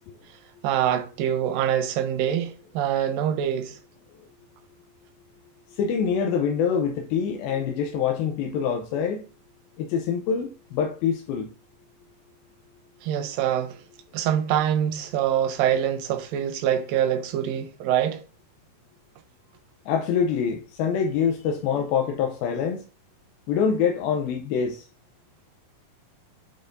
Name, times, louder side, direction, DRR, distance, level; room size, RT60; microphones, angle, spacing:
voice 1, 0.6-3.8 13.0-13.8 14.1-18.2, right 10 dB, 80° right, 2.3 m, -25 dB
voice 2, 5.7-9.2 9.8-11.5 19.9-22.8 23.5-24.8, left 7 dB, 85° left, 2.5 m, -25 dB
9.4 x 4.1 x 2.6 m
omnidirectional pair, 4.2 m